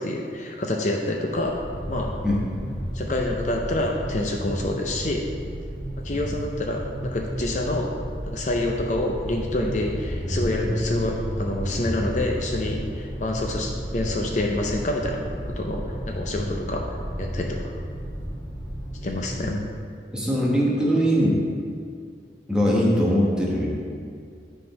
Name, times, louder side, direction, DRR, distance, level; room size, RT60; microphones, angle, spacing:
voice 1, 0.0-1.6 1.9-2.1 2.9-5.3 6.0-8.0 8.2-17.6 19.0-19.5, left 1 dB, 40° left, 1 dB, 0.6 m, -27 dB
sound 1, 1.3-19.6, equal, 15° left, 1.8 m, -32 dB
voice 2, 20.1-21.4 22.5-23.7, equal, 5° right, -5 dB, 1.1 m, -21 dB
9.4 x 3.8 x 5.3 m, 2.3 s
head